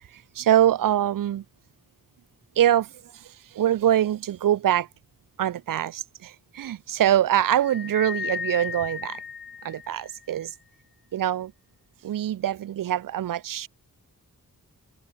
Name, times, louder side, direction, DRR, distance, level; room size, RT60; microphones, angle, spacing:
voice 1, 0.1-1.4 2.6-4.9 5.4-9.2 9.6-10.5 11.1-11.5 12.0-13.7, right 11 dB, 70° right, 0.5 m, -24 dB
sound 1, 7.6-10.2, left 6 dB, 35° left, 0.5 m, -35 dB
wide cardioid pair, 115°, 34 cm